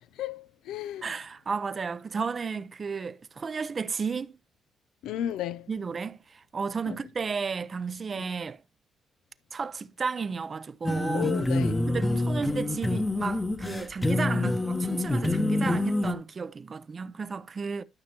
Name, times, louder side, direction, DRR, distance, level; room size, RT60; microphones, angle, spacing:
voice 1, 0.1-1.2 5.0-5.7 6.9-7.0 8.2-8.3 11.1-11.9, left 10 dB, 90° left, 0.4 m, -34 dB
voice 2, 1.0-4.3 5.7-8.6 9.5-11.3 11.9-17.8, right 5 dB, 40° right, 0.6 m, -33 dB
sound 1, 10.8-16.1, left 2 dB, 15° left, 0.9 m, -27 dB
12.5 x 5.9 x 2.9 m
cardioid pair, 90°, 0 cm